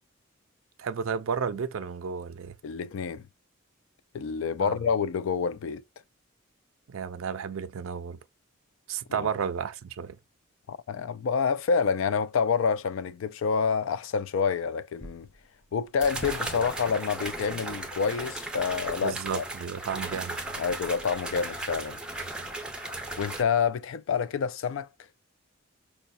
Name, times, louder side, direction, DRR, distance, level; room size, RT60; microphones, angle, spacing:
voice 1, 0.8-2.6 4.6-4.7 6.9-8.2 8.9-10.2 19.0-20.4, right 6 dB, 80° right, 0.4 m, -32 dB
voice 2, 2.6-3.2 4.1-5.8 9.1-9.3 10.7-15.3 15.7-19.4 20.6-22.0 23.2-24.9, left 6 dB, 75° left, 0.3 m, -28 dB
sound 1, 15.0-15.1 16.0-23.4, right 2 dB, 5° right, 0.5 m, -36 dB
4.8 x 2.1 x 2.6 m
head